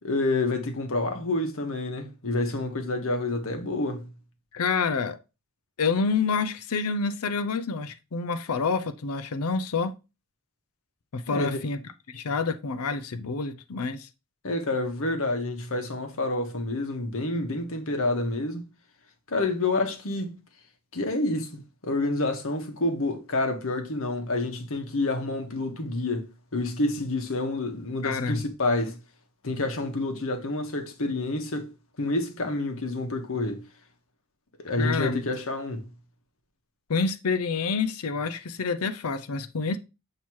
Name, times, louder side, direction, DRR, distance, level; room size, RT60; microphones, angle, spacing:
voice 1, 0.0-4.1 11.3-11.6 14.4-18.6 19.3-20.4 20.9-29.0 29.4-31.7 32.0-33.6 34.6-35.9, left 2 dB, 65° left, 1.2 m, -28 dB
voice 2, 4.5-5.2 5.8-9.9 11.1-11.8 12.1-14.1 28.0-28.4 34.8-35.2 36.9-39.8, left 4 dB, 85° left, 0.6 m, -28 dB
7.2 x 2.9 x 4.5 m
head